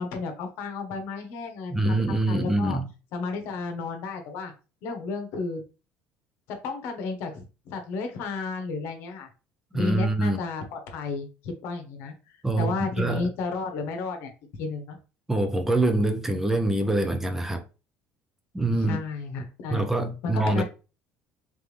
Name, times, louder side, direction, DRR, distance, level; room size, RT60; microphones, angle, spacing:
voice 1, 0.0-1.9 2.3-2.8 3.1-4.5 4.8-5.6 6.5-9.3 9.7-14.3 14.6-15.0 18.7-19.9 20.2-20.6, left 4 dB, 70° left, 1.1 m, -33 dB
voice 2, 1.7-2.8 9.7-10.4 12.4-13.3 15.3-17.6 18.5-19.0 19.7-20.6, right 2 dB, 10° right, 0.5 m, -25 dB
3.6 x 3.5 x 3.3 m
cardioid pair, 140°, 4 cm